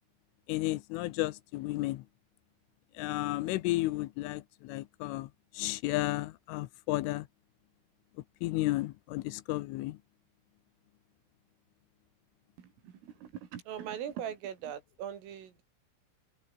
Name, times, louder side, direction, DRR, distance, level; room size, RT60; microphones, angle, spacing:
voice 1, 0.5-2.0 3.0-5.3 5.5-7.3 8.4-10.0, left 18 dB, 90° left, 3.4 m, -33 dB
voice 2, 12.6-15.6, right 9 dB, 80° right, 5.7 m, -41 dB
open air
omnidirectional pair, 5.7 m